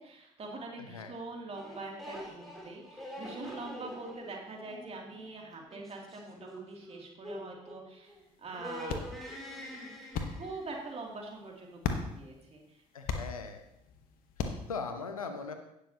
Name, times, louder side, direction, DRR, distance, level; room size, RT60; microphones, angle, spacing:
voice 1, 0.0-9.0 10.3-12.8, right 3 dB, 35° right, -1 dB, 2.7 m, -44 dB
sound 1, 1.5-8.2 8.5-10.9, equal, ahead, 3.2 m, -45 dB
sound 2, 8.1-14.8, left 6 dB, 55° left, 1.2 m, -40 dB
voice 2, 12.9-13.6 14.4-15.5, left 4 dB, 85° left, 7 dB, 0.8 m, -39 dB
17.5 x 6.5 x 2.8 m, 0.85 s
figure-of-eight pair, 50°, 18 cm